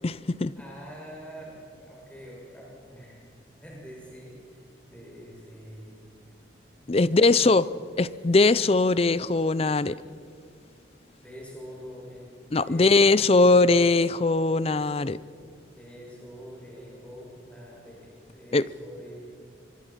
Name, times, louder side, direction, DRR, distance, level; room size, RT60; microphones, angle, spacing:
voice 1, 0.0-0.5 6.9-7.7 8.0-10.0 12.5-15.2 18.5-18.7, left 3 dB, 30° left, 18 dB, 0.5 m, -21 dB
voice 2, 0.6-3.3 3.6-6.0 6.8-7.5 11.1-12.3 12.6-13.4 15.7-19.3, equal, 5° left, -4 dB, 6.3 m, -45 dB
25.5 x 24.5 x 5.8 m, 2.3 s
head